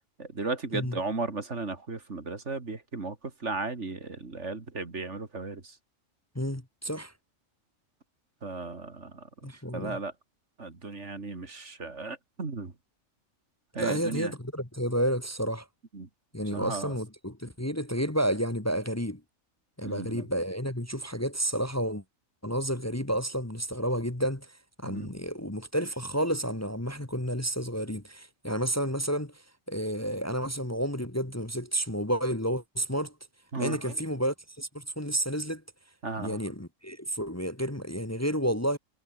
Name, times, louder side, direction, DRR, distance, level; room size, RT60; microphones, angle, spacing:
voice 1, 0.2-5.7 8.4-9.3 9.7-10.1 10.6-12.7 13.7-14.3 15.9-16.1 16.5-16.9 19.8-20.3 24.8-25.1 33.5-34.0 36.0-36.4, right 3 dB, 60° right, 2.9 m, -35 dB
voice 2, 6.4-7.1 9.4-10.0 13.8-15.7 16.3-19.2 19.8-22.0 22.4-33.1 33.6-35.6 36.2-38.8, equal, 10° left, 1.8 m, -31 dB
omnidirectional pair, 1.4 m